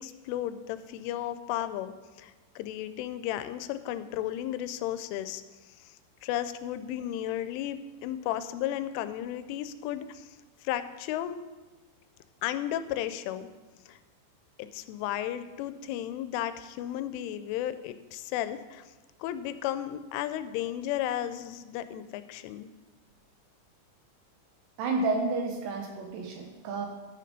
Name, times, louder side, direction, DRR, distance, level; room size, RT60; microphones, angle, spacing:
voice 1, 0.0-1.9 2.2-6.0 6.2-11.4 12.4-13.5 13.9-14.0 14.6-18.8 19.2-22.7, left 12 dB, 90° left, 12 dB, 3.1 m, -34 dB
voice 2, 24.8-26.9, right 3 dB, 75° right, 3 dB, 2.9 m, -30 dB
12.5 x 6.7 x 5.3 m, 1.2 s
omnidirectional pair, 5.5 m